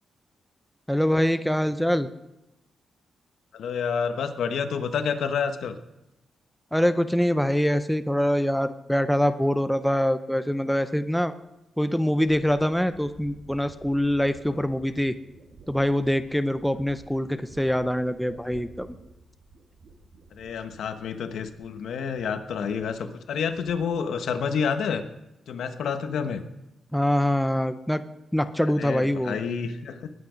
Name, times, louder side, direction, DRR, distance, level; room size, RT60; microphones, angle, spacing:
voice 1, 0.9-2.1 6.7-11.3 11.8-15.2 15.7-18.9 26.9-28.0 28.3-29.4, equal, ahead, 10 dB, 0.5 m, -24 dB
voice 2, 3.5-5.8 20.3-25.0 25.5-26.4 28.8-30.1, left 6 dB, 75° left, 8 dB, 1.1 m, -29 dB
sound 1, 11.4-11.5 12.2-21.9 22.1-23.0 23.3-24.1 24.4-24.9, right 3 dB, 60° right, 2.5 m, -51 dB
20.5 x 8.5 x 5.1 m, 0.92 s
wide cardioid pair, 160°, 0 cm